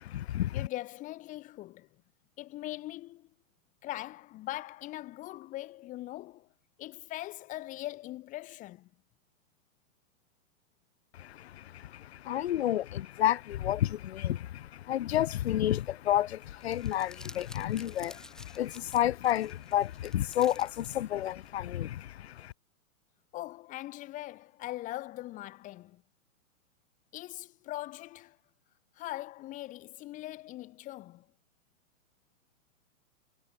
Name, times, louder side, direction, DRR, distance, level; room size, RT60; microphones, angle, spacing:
voice 1, 0.0-0.7 11.1-22.5, left 12 dB, 50° left, 1.1 m, -31 dB
voice 2, 0.5-1.9 2.4-3.3 3.8-6.5 6.8-8.9 23.3-26.0 27.1-28.4 29.0-31.2, left 16 dB, 20° left, 3.4 m, -41 dB
Crumpling crinkling, 16.4-21.5, left 1 dB, ahead, 3.7 m, -53 dB
hypercardioid pair, 170°, 40 cm